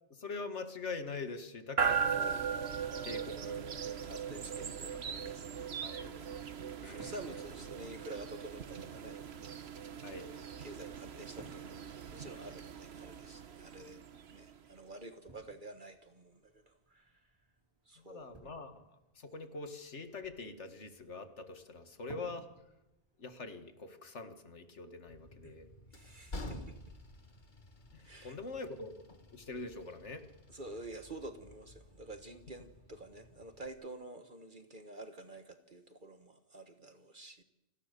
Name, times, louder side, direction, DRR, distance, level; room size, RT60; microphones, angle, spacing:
voice 1, 0.1-2.4 3.0-3.7 4.3-4.4 5.1-6.2 6.8-7.1 10.0-10.3 18.0-18.8 19.2-22.5 23.2-25.7 27.9-28.9 29.3-30.3, left 3 dB, 80° left, 9 dB, 2.2 m, -44 dB
sound 1, 1.8-14.8, right 7 dB, 65° right, 1.4 m, -39 dB
voice 2, 3.8-5.7 6.8-9.4 10.0-10.2 10.6-11.8 12.1-17.1 17.9-18.3 25.4-25.6 25.9-26.8 28.0-28.4 30.5-37.4, right 2 dB, 45° right, 8 dB, 1.5 m, -49 dB
sound 2, 5.6-23.6, right 1 dB, 20° right, 5.0 m, -61 dB
Train, 25.1-33.7, left 1 dB, 40° left, 2.0 m, -51 dB
29.0 x 20.5 x 6.8 m, 1.0 s
omnidirectional pair, 1.2 m